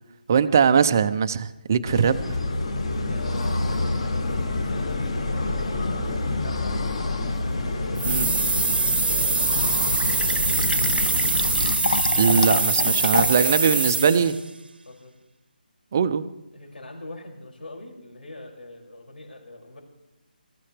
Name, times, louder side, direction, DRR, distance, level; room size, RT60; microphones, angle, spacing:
voice 1, 0.3-2.4 8.1-8.3 12.2-14.3 15.9-16.2, right 6 dB, 20° right, 11 dB, 0.4 m, -21 dB
sound 1, 1.8-11.7, left 2 dB, 35° left, 1.2 m, -27 dB
voice 2, 3.0-7.2 7.6-8.4 9.0-10.8 12.7-14.4 14.9-15.1 16.5-19.8, left 1 dB, 75° left, 0 dB, 6.0 m, -42 dB
sound 2, 8.0-14.4, right 3 dB, 75° right, 0.8 m, -23 dB
Fill (with liquid), 9.6-13.6, left 4 dB, 60° left, 0.5 m, -28 dB
24.0 x 14.5 x 3.3 m, 0.93 s
hypercardioid pair, 175°, 5 cm